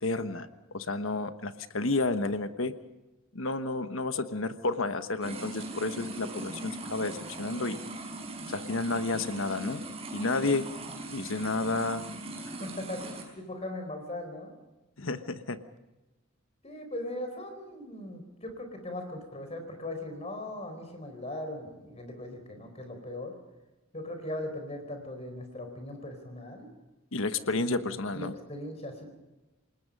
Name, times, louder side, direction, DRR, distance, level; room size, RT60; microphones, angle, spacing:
voice 1, 0.0-0.5 0.7-2.7 3.3-7.8 8.5-9.8 10.1-10.6 11.1-12.0 15.0-15.6 27.1-28.3, left 3 dB, 75° left, 10 dB, 1.3 m, -31 dB
sound 1, 5.2-13.2, right 2 dB, 30° right, 5.1 m, -40 dB
voice 2, 12.6-14.5 16.6-23.3 23.9-26.7 27.4-29.0, left 1 dB, 30° left, 6 dB, 4.3 m, -39 dB
28.5 x 19.5 x 5.4 m, 1.1 s
head